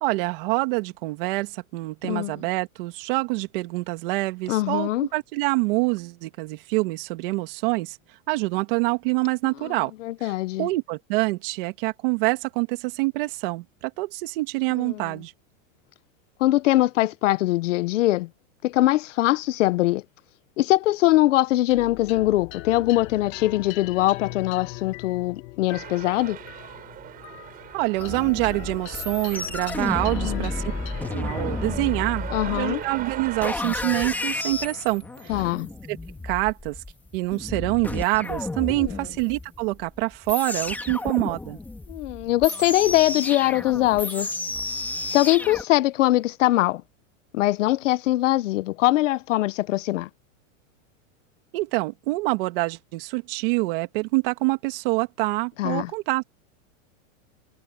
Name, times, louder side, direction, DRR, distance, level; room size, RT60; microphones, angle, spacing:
voice 1, 0.0-8.0 8.3-9.9 10.2-10.3 10.6-15.3 27.7-30.6 31.1-35.4 35.9-36.0 36.2-36.8 37.1-41.6 51.5-56.2, right 23 dB, 40° right, 2.3 m, -26 dB
voice 2, 2.0-2.4 4.5-5.1 9.6-10.7 14.8-15.2 16.4-18.3 18.6-20.0 20.6-26.4 30.2-30.5 32.3-32.8 35.3-35.7 38.8-39.1 41.9-44.4 45.1-46.8 47.3-50.1 55.6-55.9, left 16 dB, 70° left, 0.8 m, -22 dB
sound 1, 21.7-36.4, left 17 dB, 30° left, 1.8 m, -42 dB
sound 2, 25.7-33.5, right 12 dB, 20° right, 5.0 m, -39 dB
sound 3, 28.0-45.6, left 2 dB, 5° left, 2.2 m, -32 dB
supercardioid pair, 175°, 39 cm